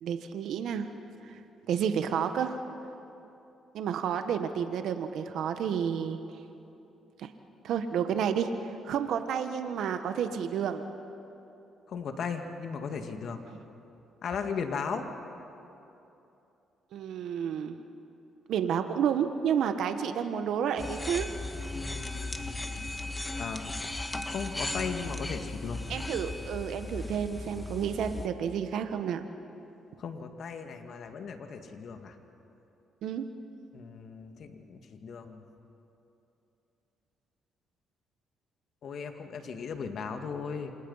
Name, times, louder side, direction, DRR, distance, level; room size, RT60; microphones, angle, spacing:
voice 1, 0.0-0.9 1.2-1.4 1.7-2.6 3.7-6.2 7.2-7.3 7.6-10.8 13.5-13.6 16.9-17.8 18.5-21.3 25.9-29.2 33.0-33.2, right 8 dB, 75° right, 8 dB, 1.2 m, -30 dB
voice 2, 11.9-13.4 14.2-15.1 21.7-22.9 23.4-23.7 24.3-25.8 30.0-32.2 33.7-35.4 38.8-40.7, left 6 dB, 60° left, 6 dB, 2.1 m, -37 dB
sound 1, 20.8-28.3, left 2 dB, 15° left, 1.7 m, -37 dB
28.5 x 26.5 x 5.7 m, 2.9 s
cardioid pair, 90°, 0 cm